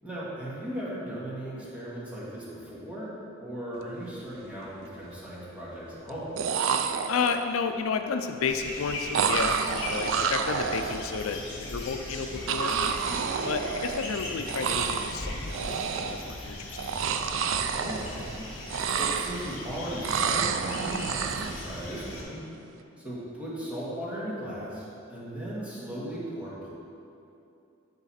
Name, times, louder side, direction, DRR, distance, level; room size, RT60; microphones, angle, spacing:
voice 1, 0.0-3.1 3.4-6.4 17.8-18.3 19.0-22.4 23.0-26.7, right 1 dB, 5° right, -8 dB, 1.8 m, -37 dB
sound 1, 3.9-4.1 4.5-5.1 6.1-6.2 6.4-7.6 9.1-11.3 12.5-14.2 14.4-15.2 15.5-16.3 16.7-18.4 18.6-19.7 20.0-21.6, right 6 dB, 70° right, 0.4 m, -29 dB
voice 2, 7.1-12.7 13.4-16.8, left 5 dB, 80° left, 7 dB, 0.4 m, -31 dB
sound 2, 8.4-22.2, left 1 dB, 65° left, 1.8 m, -38 dB
12.0 x 4.0 x 4.3 m, 2.7 s
head